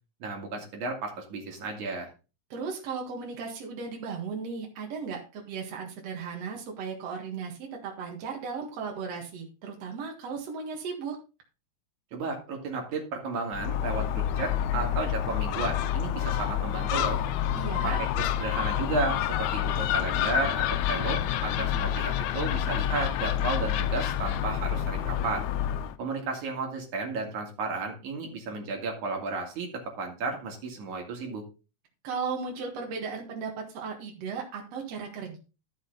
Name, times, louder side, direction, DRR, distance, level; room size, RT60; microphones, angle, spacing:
voice 1, 0.2-2.1 12.1-17.2 17.8-25.4 26.0-29.7 30.0-31.4, right 3 dB, 80° right, 1 dB, 3.5 m, -33 dB
voice 2, 2.5-11.2 17.5-18.0 32.0-35.4, right 5 dB, 60° right, 1 dB, 2.8 m, -36 dB
Gull seagull, 13.5-26.0, left 10 dB, 80° left, 2.0 m, -28 dB
13.0 x 5.9 x 3.9 m, 0.31 s
omnidirectional pair, 3.4 m